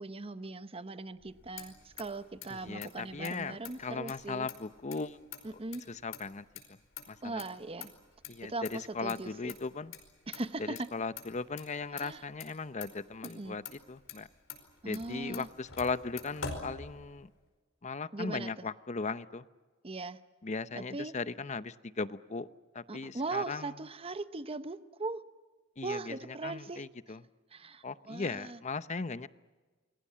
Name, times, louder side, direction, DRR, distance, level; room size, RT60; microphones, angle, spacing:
voice 1, 0.0-4.5 5.4-5.8 7.2-7.9 8.5-9.5 10.3-10.9 12.0-12.2 13.2-13.6 14.8-15.5 18.1-18.7 19.8-20.2 20.7-21.1 22.9-25.2 25.8-26.8 27.5-28.6, right 3 dB, 30° right, 12 dB, 0.9 m, -39 dB
Motor vehicle (road), 1.2-17.4, left 5 dB, 85° left, 5.0 m, -48 dB
voice 2, 2.5-5.2 5.9-6.4 7.1-7.4 8.3-9.9 10.6-14.3 14.8-17.3 17.8-19.4 20.4-22.5 22.7-23.7 25.8-27.2 27.8-29.3, left 4 dB, 35° left, 14 dB, 0.7 m, -38 dB
29.0 x 22.0 x 7.5 m, 1.3 s
head